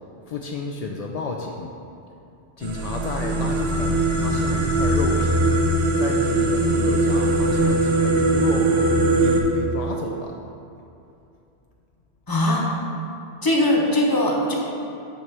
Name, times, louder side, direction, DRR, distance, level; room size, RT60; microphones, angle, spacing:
voice 1, 0.3-1.7 2.6-5.5 6.0-8.7 9.2-10.3, left 4 dB, 60° left, 1 dB, 0.4 m, -31 dB
sound 1, 2.6-9.4, right 2 dB, 65° right, 0.9 m, -20 dB
voice 2, 12.3-12.7 13.4-14.5, left 1 dB, 20° left, -2 dB, 0.9 m, -20 dB
9.2 x 3.1 x 5.9 m, 2.7 s
omnidirectional pair, 1.1 m